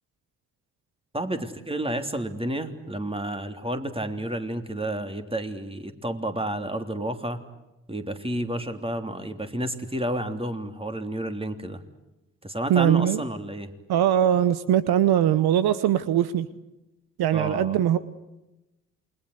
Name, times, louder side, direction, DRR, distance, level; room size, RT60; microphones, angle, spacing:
voice 1, 1.1-7.4 7.9-11.8 12.4-13.7 17.3-17.8, right 1 dB, 15° right, 7 dB, 3.3 m, -30 dB
voice 2, 12.7-13.2 13.9-16.5 17.2-18.0, right 10 dB, 70° right, 15 dB, 1.0 m, -21 dB
28.5 x 22.0 x 8.1 m, 0.97 s
hypercardioid pair, 40°, 40 cm